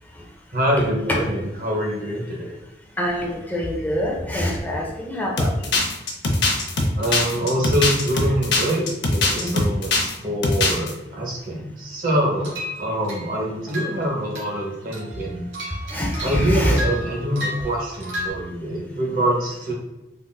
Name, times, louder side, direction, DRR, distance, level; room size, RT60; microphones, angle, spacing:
voice 1, 0.5-2.6 7.0-8.9 9.1-15.5 16.2-19.7, right 1 dB, 50° right, -2 dB, 0.8 m, -25 dB
voice 2, 3.0-5.7 9.4-9.6 15.9-16.8, equal, 10° left, -2 dB, 0.4 m, -25 dB
sound 1, 5.4-10.1 10.4-10.9, left 2 dB, 70° left, 0.5 m, -21 dB
sound 2, 12.3-13.3 13.7-14.0 14.3-14.6 14.9-18.3, left 1 dB, 85° right, 1.1 m, -33 dB
3.5 x 2.5 x 2.2 m, 0.96 s
head